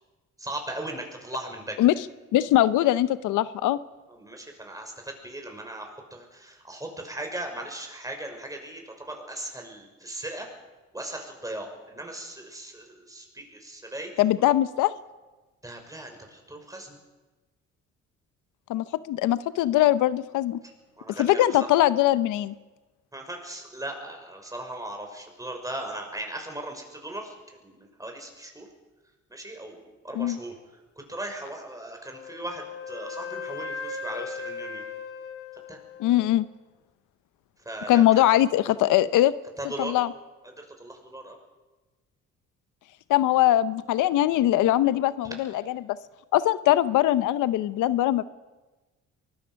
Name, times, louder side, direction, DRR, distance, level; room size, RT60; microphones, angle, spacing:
voice 1, 0.4-1.8 4.1-10.5 10.9-14.1 15.6-17.0 21.0-21.7 23.1-28.7 29.3-30.5 31.0-34.9 35.7-35.8 37.6-38.2 39.6-39.9 40.5-41.4 45.2-45.3, right 1 dB, 10° right, 3 dB, 5.9 m, -38 dB
voice 2, 2.3-3.8 14.2-14.9 18.7-20.6 21.2-22.5 30.1-30.4 36.0-36.5 37.9-39.3 39.8-40.1 43.1-46.0 46.3-48.2, left 13 dB, 90° left, 15 dB, 0.8 m, -21 dB
Wind instrument woodwind instrument, 32.1-36.3, left 4 dB, 50° left, 2.9 m, -37 dB
23.5 x 20.5 x 6.4 m, 1.2 s
cardioid pair, 90°, 30 cm